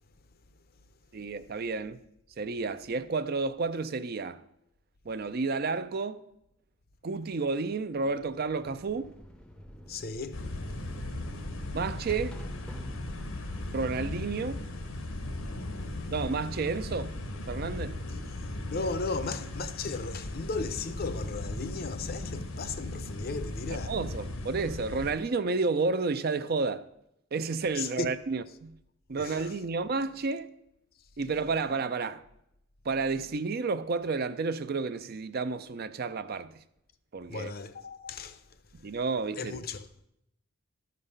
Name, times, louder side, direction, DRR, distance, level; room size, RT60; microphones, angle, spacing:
voice 1, 1.1-2.0 2.4-4.4 5.0-6.2 7.0-9.2 11.7-12.4 13.7-14.6 16.1-17.1 17.5-18.0 23.7-26.9 27.3-28.7 29.1-30.5 31.2-32.2 32.8-36.5 37.1-37.5 38.7-39.6, right 4 dB, 45° right, 0.4 m, -31 dB
sound 1, 8.2-14.7, equal, 5° left, 0.6 m, -46 dB
voice 2, 9.9-10.4 18.7-23.9 27.8-28.1 29.2-29.4 37.3-38.4 39.4-39.9, left 3 dB, 45° left, 0.6 m, -35 dB
sound 2, 10.3-25.1, left 1 dB, 90° left, 1.2 m, -37 dB
13.0 x 5.3 x 5.5 m
head